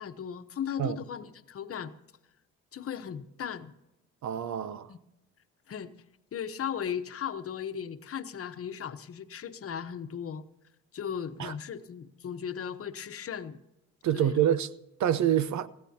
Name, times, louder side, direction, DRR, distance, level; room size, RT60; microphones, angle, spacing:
voice 1, 0.0-1.9 2.7-3.7 4.9-5.0 5.7-5.9 6.3-10.4 10.9-13.6 14.1-14.4, left 8 dB, 50° left, 1.1 m, -37 dB
voice 2, 4.2-4.9 11.4-11.5 14.0-14.7 15.0-15.7, right 10 dB, 70° right, 0.9 m, -26 dB
19.5 x 15.0 x 2.9 m
cardioid pair, 90°, 30 cm